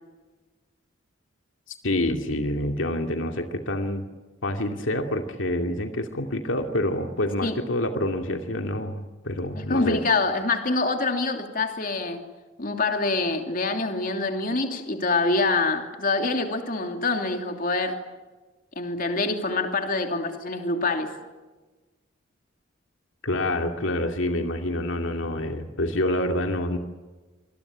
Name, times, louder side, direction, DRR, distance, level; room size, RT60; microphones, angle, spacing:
voice 1, 1.8-4.0 4.4-10.0 23.2-26.8, left 1 dB, 75° left, 4 dB, 2.4 m, -27 dB
voice 2, 9.6-12.2 12.6-18.0 18.8-21.1, left 3 dB, 45° left, 5 dB, 2.9 m, -25 dB
26.5 x 21.5 x 8.8 m, 1.2 s
head